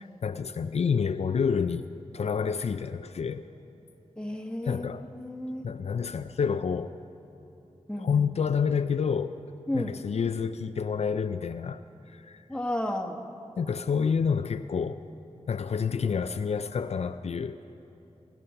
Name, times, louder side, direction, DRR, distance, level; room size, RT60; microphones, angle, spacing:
voice 1, 0.2-1.9 2.1-3.5 4.6-5.1 5.6-7.0 8.0-9.4 9.7-11.8 12.1-12.5 13.6-15.0 15.5-17.6, left 6 dB, 65° left, 10 dB, 0.4 m, -28 dB
voice 2, 4.2-5.7 7.9-8.3 9.7-10.0 12.5-13.2, left 1 dB, 10° left, 3 dB, 1.3 m, -33 dB
20.0 x 11.5 x 5.7 m, 2.9 s
wide cardioid pair, 60°, 12 cm